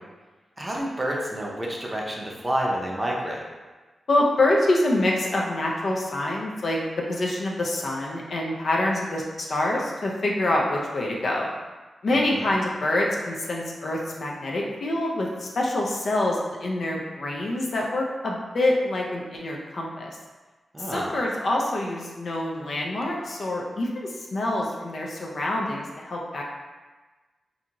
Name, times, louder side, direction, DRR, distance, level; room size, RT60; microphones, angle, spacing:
voice 1, 0.6-3.4 12.3-12.5 20.7-21.1, right 1 dB, 20° right, -2 dB, 0.5 m, -29 dB
voice 2, 4.1-11.5 12.0-20.2 20.8-26.4, left 1 dB, 60° left, -2 dB, 0.4 m, -26 dB
2.5 x 2.3 x 2.9 m, 1.3 s
wide cardioid pair, 110°, 0 cm